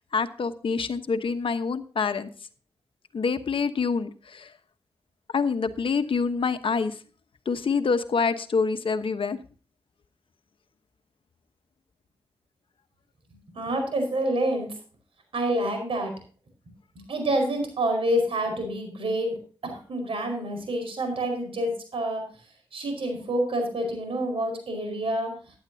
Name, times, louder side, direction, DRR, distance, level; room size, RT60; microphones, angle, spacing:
voice 1, 0.0-2.3 3.1-4.5 5.3-7.0 7.5-9.4, left 5 dB, 70° left, 10 dB, 1.1 m, -26 dB
voice 2, 13.5-14.7 15.3-16.1 17.1-19.4 19.6-22.3 22.7-25.4, right 1 dB, 75° right, 5 dB, 4.9 m, -27 dB
15.0 x 10.5 x 2.8 m, 0.39 s
cardioid pair, 50°, 9 cm